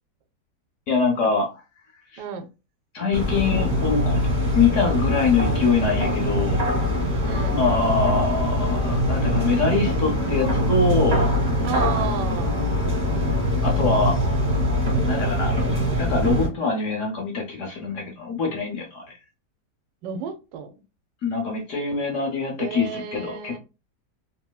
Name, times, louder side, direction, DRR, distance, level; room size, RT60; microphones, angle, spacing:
voice 1, 0.9-1.5 2.1-2.2 2.9-4.2 4.5-6.6 7.5-11.2 13.3-13.4 13.6-14.2 15.0-15.6 16.0-19.0 21.2-23.6, left 4 dB, 60° left, 1 dB, 0.8 m, -24 dB
sound 1, 3.1-16.5, equal, 35° right, 1.0 m, -23 dB
voice 2, 7.2-7.6 11.6-12.5 20.0-20.7 22.6-23.6, right 6 dB, 90° right, 7 dB, 1.2 m, -32 dB
3.0 x 2.7 x 2.2 m, 0.29 s
omnidirectional pair, 1.8 m